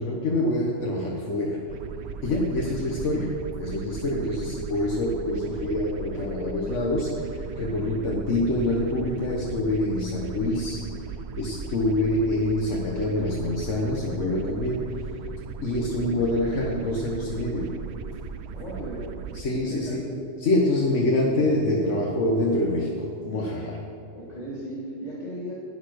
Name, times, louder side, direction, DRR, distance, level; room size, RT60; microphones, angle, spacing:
voice 1, 0.0-1.6 2.2-7.1 7.6-10.8 11.4-14.9 15.6-17.8 19.3-20.0 20.4-22.9 23.2-23.8, left 1 dB, 80° left, -2 dB, 1.5 m, -26 dB
sound 1, 1.7-19.4, right 6 dB, 70° right, 0.8 m, -38 dB
voice 2, 18.5-19.0 19.5-20.2 24.1-25.6, right 1 dB, 35° left, -5 dB, 2.4 m, -36 dB
11.0 x 8.6 x 6.4 m, 2.8 s
omnidirectional pair, 1.2 m